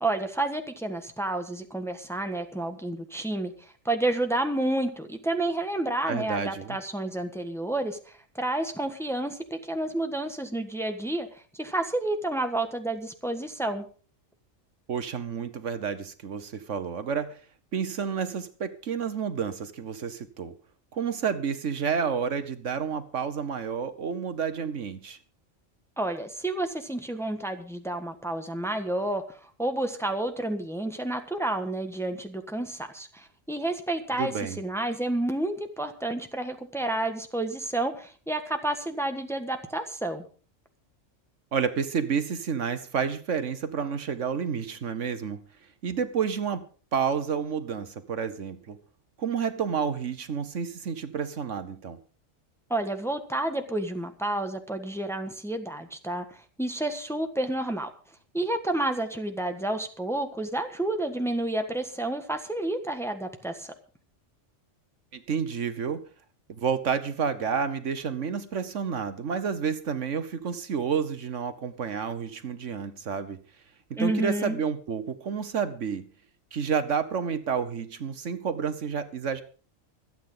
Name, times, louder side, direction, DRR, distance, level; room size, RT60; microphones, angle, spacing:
voice 1, 0.0-13.9 26.0-40.2 52.7-56.2 56.6-57.9 58.3-63.7 74.0-74.6, right 1 dB, ahead, 6 dB, 1.4 m, -30 dB
voice 2, 6.1-6.8 14.9-17.4 17.7-20.5 20.9-25.2 34.2-34.6 41.5-45.4 45.8-46.6 46.9-48.8 49.2-52.0 65.1-66.0 66.5-73.4 73.9-76.1 76.5-79.4, right 6 dB, 70° right, 11 dB, 1.4 m, -30 dB
25.0 x 9.1 x 3.9 m, 0.40 s
omnidirectional pair, 1.3 m